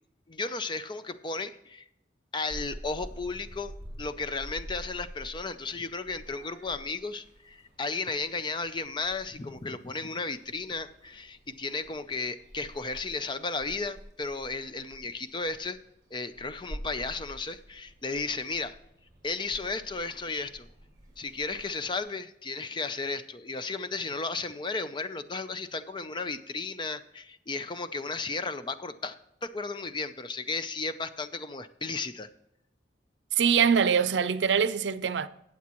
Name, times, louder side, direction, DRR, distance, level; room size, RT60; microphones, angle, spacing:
voice 1, 0.3-1.8 2.3-15.8 16.1-18.8 19.2-20.7 21.2-29.2 29.4-32.3, left 3 dB, 25° left, 0.5 m, -34 dB
Purr / Meow, 2.5-22.0, equal, 20° right, 4.7 m, -48 dB
voice 2, 33.4-35.3, right 7 dB, 80° right, 0.5 m, -23 dB
18.0 x 7.2 x 3.0 m
head